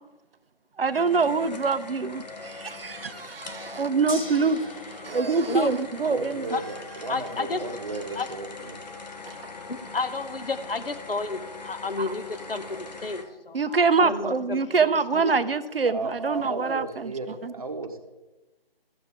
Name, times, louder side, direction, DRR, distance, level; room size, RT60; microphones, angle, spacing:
voice 1, 0.8-4.6 5.0-6.4 9.4-9.5 13.5-17.1 17.4-17.5, right 4 dB, 70° right, 14 dB, 0.6 m, -25 dB
sound 1, 0.9-13.2, left 3 dB, 45° left, 0.9 m, -42 dB
Gong, 4.1-14.3, left 1 dB, 10° left, 0.7 m, -49 dB
voice 2, 5.0-5.7 6.0-8.8 15.9-18.0, right 3 dB, 35° right, 6 dB, 0.9 m, -35 dB
voice 3, 7.1-7.6 8.2-8.3 9.7-15.4, left 4 dB, 70° left, 9 dB, 0.9 m, -32 dB
14.0 x 7.1 x 3.5 m, 1.1 s
figure-of-eight pair, 155°, 30 cm